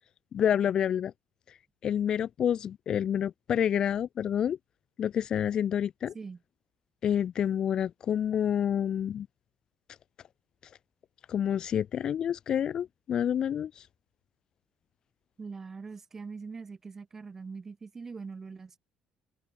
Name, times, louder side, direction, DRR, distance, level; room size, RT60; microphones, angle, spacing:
voice 1, 0.3-1.1 1.5-1.6 1.8-4.6 5.0-6.1 7.0-9.3 11.3-13.9, left 9 dB, 35° left, 1.0 m, -28 dB
voice 2, 15.4-18.8, right 4 dB, 20° right, 4.0 m, -42 dB
cardioid pair, 180°, 2 cm